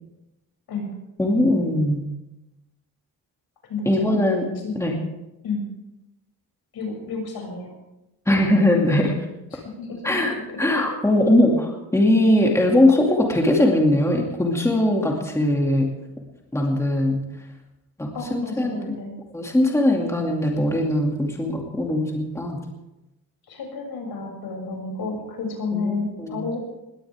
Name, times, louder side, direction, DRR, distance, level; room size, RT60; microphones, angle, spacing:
voice 1, 1.2-2.0 3.9-4.5 4.8-5.0 8.3-9.1 10.0-15.9 16.5-17.2 18.0-19.0 19.3-22.6 25.7-26.4, left 1 dB, 5° left, 0 dB, 2.5 m, -20 dB
voice 2, 3.7-4.3 4.6-4.7 5.4-5.6 6.7-7.7 9.5-10.0 10.7-10.8 18.1-19.1 23.5-26.6, left 4 dB, 75° left, 1 dB, 7.2 m, -31 dB
21.0 x 17.0 x 3.6 m, 0.95 s
cardioid pair, 145°, 37 cm